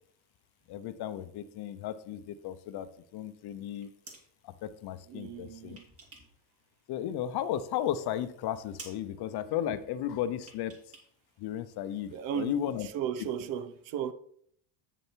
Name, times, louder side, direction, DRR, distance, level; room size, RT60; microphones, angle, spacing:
voice 1, 0.7-3.9 4.4-5.8 6.9-10.7 11.4-12.9, left 10 dB, 50° left, 0.7 m, -34 dB
sound 1, 3.6-4.3 5.3-6.4 6.7-7.6 8.0-8.1 8.4-8.5 8.8-9.1 10.4-11.1 11.4-11.5, right 3 dB, 25° right, 2.6 m, -51 dB
voice 2, 5.1-5.9 12.1-14.1, right 9 dB, 65° right, 0.9 m, -36 dB
8.5 x 6.6 x 4.5 m
cardioid pair, 155°, 50 cm